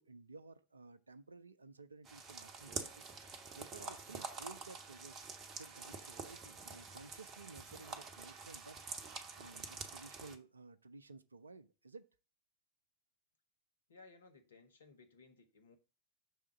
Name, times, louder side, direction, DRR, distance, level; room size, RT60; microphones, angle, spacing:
voice 1, 0.0-3.1 3.5-5.2 5.5-8.8 9.3-12.1, right 3 dB, 75° right, 0.4 m, -55 dB
sound 1, 2.1-10.4, right 4 dB, 25° right, 0.9 m, -47 dB
voice 2, 13.9-15.8, left 3 dB, 70° left, 1.0 m, -60 dB
6.3 x 3.6 x 5.9 m
figure-of-eight pair, 90°, 0 cm